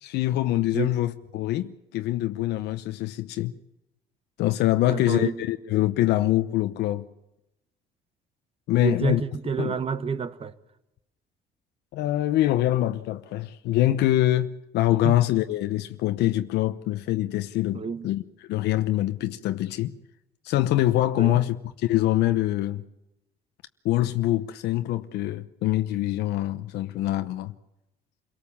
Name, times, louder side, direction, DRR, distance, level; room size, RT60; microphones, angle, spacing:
voice 1, 0.0-3.6 4.4-7.1 8.7-9.2 9.6-9.8 11.9-18.2 18.5-20.0 20.4-21.6 21.8-22.8 23.8-27.6, left 14 dB, 80° left, 0.9 m, -24 dB
voice 2, 4.9-5.4 8.8-10.5 15.0-15.1 17.7-18.1 21.2-21.4, right 5 dB, 35° right, 1.3 m, -29 dB
28.0 x 18.0 x 7.2 m
cardioid pair, 110°, 17 cm